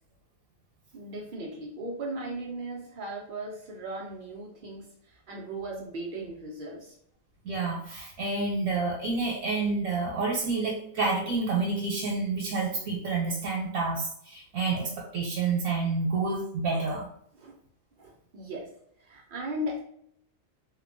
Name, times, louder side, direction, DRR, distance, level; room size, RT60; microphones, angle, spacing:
voice 1, 0.9-7.0 17.3-17.6 18.0-18.7 19.0-19.8, right 1 dB, 65° right, -2 dB, 0.5 m, -37 dB
voice 2, 7.4-17.1, right 3 dB, 90° right, -2 dB, 1.1 m, -29 dB
2.8 x 2.1 x 2.5 m, 0.67 s
omnidirectional pair, 1.4 m